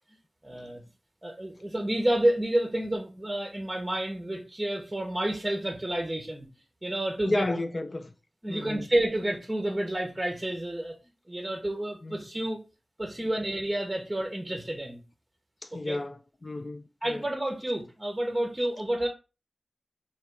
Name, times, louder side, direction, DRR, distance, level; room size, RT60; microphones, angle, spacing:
voice 1, 0.4-0.8 1.2-6.5 6.8-7.5 8.4-10.9 11.3-12.6 13.0-15.0 15.8-16.0 17.0-19.1, right 1 dB, 20° right, 0.8 m, -29 dB
voice 2, 7.2-8.1 8.5-8.9 12.0-12.2 13.2-13.3 15.6-17.2, left 2 dB, 40° left, 0.4 m, -33 dB
3.2 x 2.8 x 4.5 m
wide cardioid pair, 80°, 0 cm